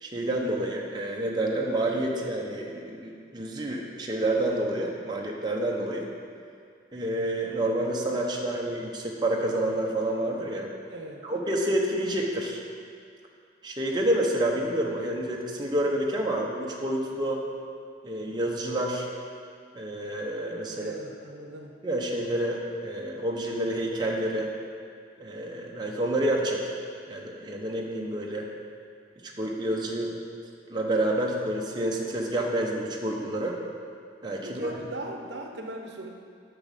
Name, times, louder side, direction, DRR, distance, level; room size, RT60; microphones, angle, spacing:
voice 1, 0.0-6.1 6.9-10.7 11.2-12.6 13.6-17.4 18.0-19.1 19.7-20.9 21.8-24.5 25.2-26.7 27.1-28.5 29.4-30.1 30.7-33.6 34.2-34.8, right 1 dB, 25° right, -1 dB, 0.9 m, -28 dB
voice 2, 10.9-11.2 20.7-21.7 34.4-36.1, right 1 dB, 70° right, 3 dB, 0.8 m, -39 dB
8.6 x 6.0 x 5.8 m, 2.2 s
head